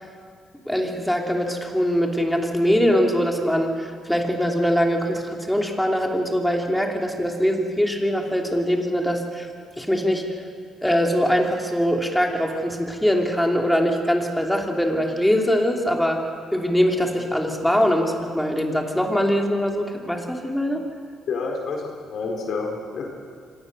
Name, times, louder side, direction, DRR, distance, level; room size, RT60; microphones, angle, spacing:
voice 1, 0.6-9.5 9.8-10.3 10.8-16.2 16.5-20.8, equal, 5° left, 1 dB, 3.1 m, -22 dB
voice 2, 21.3-23.1, left 4 dB, 65° left, 1 dB, 4.2 m, -29 dB
25.0 x 18.5 x 6.7 m, 2.2 s
cardioid pair, 90°, 0 cm